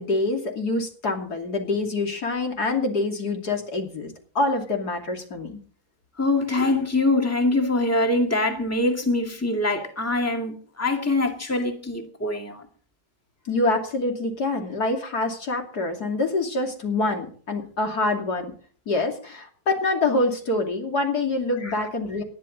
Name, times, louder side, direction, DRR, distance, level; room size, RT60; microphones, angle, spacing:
voice 1, 0.0-5.6 13.4-18.5 18.9-22.2, left 2 dB, 75° left, 3.3 m, -26 dB
voice 2, 6.2-12.6 21.6-21.8, left 2 dB, 10° left, 2.1 m, -24 dB
20.0 x 12.0 x 4.0 m
omnidirectional pair, 1.7 m